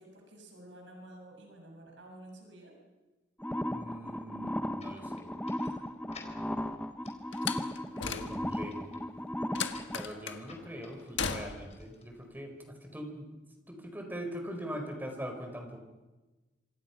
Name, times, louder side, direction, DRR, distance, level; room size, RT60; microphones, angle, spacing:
voice 1, 0.0-2.8, right 1 dB, 75° right, 1 dB, 7.1 m, -51 dB
sound 1, 3.4-10.0, left 1 dB, 5° left, 0.9 m, -36 dB
voice 2, 3.6-5.3 8.0-8.9 9.9-13.3 13.7-15.8, equal, 10° right, 4 dB, 4.5 m, -42 dB
sound 2, 4.8-12.6, left 3 dB, 35° left, 4.7 m, -56 dB
Slam, 7.3-8.7 9.6-10.4 11.2-11.8, left 6 dB, 75° left, 1.6 m, -36 dB
26.5 x 26.5 x 5.9 m, 1.2 s
head